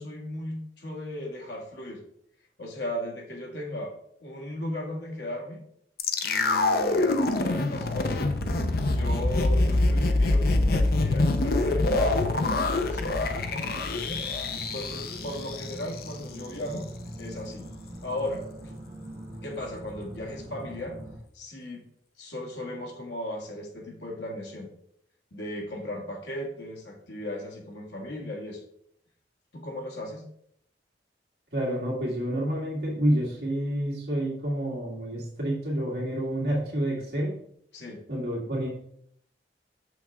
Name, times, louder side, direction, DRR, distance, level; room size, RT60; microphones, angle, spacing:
voice 1, 0.0-2.0 2.6-3.9 4.2-5.6 6.2-8.3 8.9-16.9 17.2-17.7 18.0-18.7 19.4-21.0 21.3-21.8 22.2-24.7 25.3-28.6 29.5-30.2 37.7-38.0, left 1 dB, 80° left, -1 dB, 2.0 m, -37 dB
sound 1, 6.0-16.1 16.4-16.5, left 2 dB, 55° left, 0.7 m, -25 dB
sound 2, 7.8-21.2, right 1 dB, 45° right, 2.2 m, -42 dB
voice 2, 31.5-37.4 38.1-38.7, right 1 dB, 65° right, -4 dB, 2.1 m, -28 dB
6.5 x 6.2 x 3.6 m, 0.69 s
head